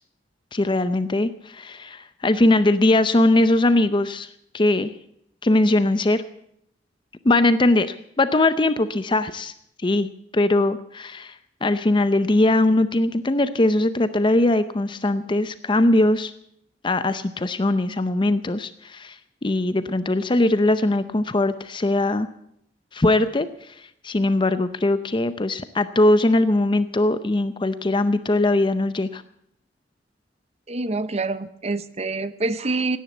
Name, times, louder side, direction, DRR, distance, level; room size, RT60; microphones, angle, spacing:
voice 1, 0.5-4.3 4.5-4.9 5.4-6.2 7.2-9.5 9.8-11.3 11.6-16.3 16.8-19.2 19.4-22.3 22.9-23.5 24.0-29.2, left 2 dB, 25° left, 12 dB, 0.6 m, -20 dB
voice 2, 30.7-33.0, right 3 dB, 35° right, 13 dB, 0.8 m, -26 dB
16.5 x 10.0 x 8.2 m, 0.70 s
head